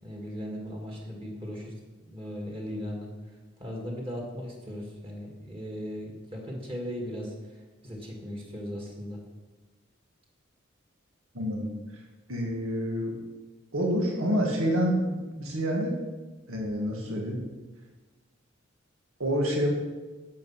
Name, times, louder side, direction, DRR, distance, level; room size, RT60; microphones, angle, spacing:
voice 1, 0.0-3.1 3.6-9.2, equal, 25° right, -1 dB, 2.1 m, -38 dB
voice 2, 11.3-11.7 12.3-13.2 13.7-15.9 16.5-17.4 19.2-19.7, equal, 90° right, -1 dB, 1.9 m, -28 dB
10.5 x 7.5 x 5.8 m, 1.2 s
head